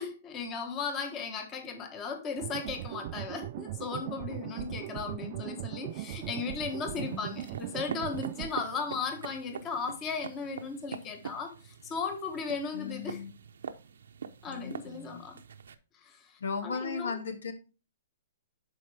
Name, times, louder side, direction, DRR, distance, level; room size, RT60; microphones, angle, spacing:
voice 1, 0.0-13.2 14.4-15.3 16.0-17.1, left 5 dB, 20° left, 1.2 m, -36 dB
sound 1, 2.4-8.5, right 14 dB, 40° right, 0.3 m, -39 dB
sound 2, 5.9-15.7, right 6 dB, 85° right, 0.8 m, -45 dB
voice 2, 6.9-7.4 12.7-13.3 14.5-15.2 16.4-17.5, left 5 dB, 85° left, 1.8 m, -37 dB
11.0 x 4.6 x 3.4 m
hypercardioid pair, 155°, 0 cm